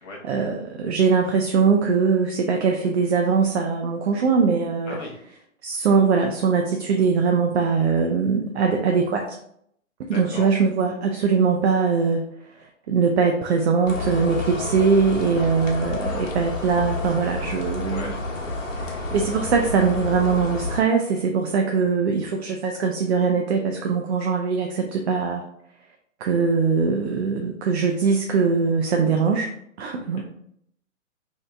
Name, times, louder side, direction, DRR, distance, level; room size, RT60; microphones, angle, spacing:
voice 1, 0.2-5.0 5.6-9.3 10.1-12.2 12.6-18.1 18.9-25.4 26.2-29.5 29.8-30.2, right 5 dB, 55° right, 2 dB, 0.5 m, -21 dB
voice 2, 4.8-5.2 8.6-9.1 10.1-10.5 17.9-18.2 18.6-18.9 19.4-19.5 21.8-22.3 30.2-30.3, left 1 dB, 20° left, -2 dB, 0.8 m, -39 dB
sound 1, 13.9-20.8, left 2 dB, 65° left, 1.1 m, -30 dB
2.7 x 2.7 x 3.3 m, 0.70 s
hypercardioid pair, 135°, 40 cm